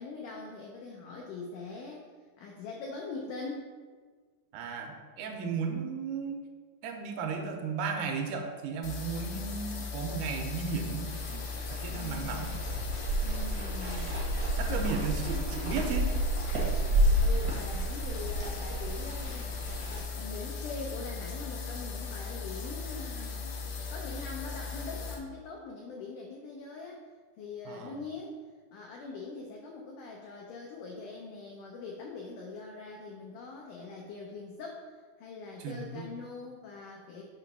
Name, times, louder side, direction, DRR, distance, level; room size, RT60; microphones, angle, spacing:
voice 1, 0.0-2.1 2.4-3.7 11.9-12.5 13.2-14.2 14.7-15.0 17.2-19.5 19.9-23.5 23.8-27.0 27.4-28.4 28.7-37.2, left 4 dB, 90° left, 0 dB, 1.8 m, -42 dB
voice 2, 4.5-6.4 6.8-12.5 14.6-16.1 27.7-27.9 35.6-36.1, right 5 dB, 80° right, 4 dB, 2.6 m, -35 dB
sound 1, 8.8-25.1, left 5 dB, 70° left, 1.8 m, -38 dB
sound 2, 11.1-20.0, right 1 dB, 65° right, 0.9 m, -31 dB
8.1 x 3.0 x 5.9 m, 1.5 s
omnidirectional pair, 4.6 m